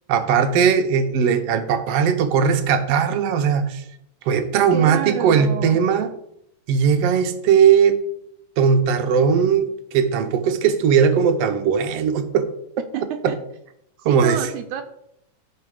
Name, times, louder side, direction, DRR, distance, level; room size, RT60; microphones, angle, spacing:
voice 1, 0.1-3.8 4.3-6.1 6.7-8.0 8.6-12.5 14.1-14.4, right 7 dB, 65° right, 9 dB, 1.7 m, -18 dB
voice 2, 4.7-5.8 12.9-13.4 14.0-14.8, right 9 dB, 80° right, 6 dB, 2.1 m, -28 dB
14.0 x 5.8 x 4.9 m, 0.76 s
omnidirectional pair, 3.5 m